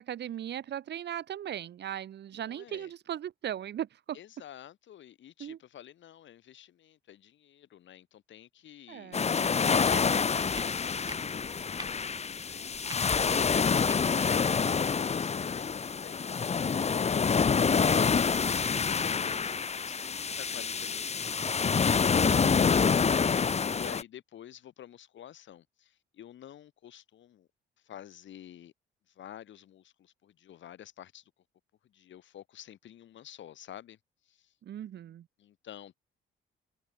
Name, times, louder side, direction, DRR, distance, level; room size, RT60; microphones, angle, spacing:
voice 1, 0.0-4.2 5.4-5.6 8.9-9.3 34.6-35.3, right 10 dB, 60° right, 1.1 m, -38 dB
voice 2, 2.3-2.9 4.1-12.8 13.1-22.1 23.1-27.5 27.8-28.7 29.1-31.3 31.8-34.0 34.2-34.5 35.4-35.9, left 11 dB, 70° left, 4.6 m, -50 dB
sound 1, 9.1-24.0, left 6 dB, 35° left, 1.1 m, -27 dB
sound 2, 9.8-10.0 10.5-10.7 11.1-11.2 11.8-12.0 12.8-13.0 13.9-14.0 14.4-14.5, right 3 dB, 20° right, 7.8 m, -43 dB
cardioid pair, 90°, 20 cm